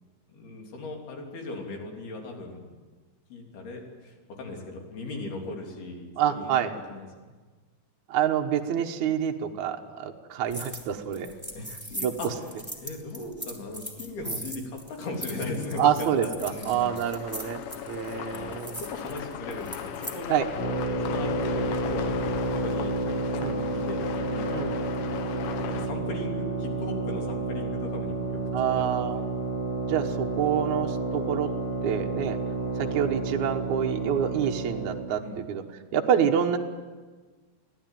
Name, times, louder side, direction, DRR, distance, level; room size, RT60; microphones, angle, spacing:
voice 1, 0.3-2.8 3.3-7.1 11.2-17.0 18.3-20.4 21.0-23.0 23.4-24.5 25.7-28.4 28.7-28.9 30.0-30.2 32.9-33.0 35.2-35.4, left 2 dB, 60° left, 1 dB, 5.2 m, -38 dB
voice 2, 6.2-6.7 8.1-11.3 12.0-12.1 15.8-17.6 17.9-18.8 20.3-20.5 23.4-23.6 24.5-24.7 28.5-29.2 29.9-31.5 31.8-32.4 32.8-35.6 35.9-36.6, right 9 dB, 70° right, 2 dB, 1.8 m, -27 dB
sound 1, 10.5-10.9 11.1-20.2, right 1 dB, 5° left, 2.9 m, -39 dB
sound 2, 16.4-25.9, left 8 dB, 75° left, 3.5 m, -37 dB
sound 3, 20.5-35.1, right 2 dB, 40° left, 4.0 m, -30 dB
24.0 x 16.5 x 9.3 m, 1.4 s
omnidirectional pair, 5.3 m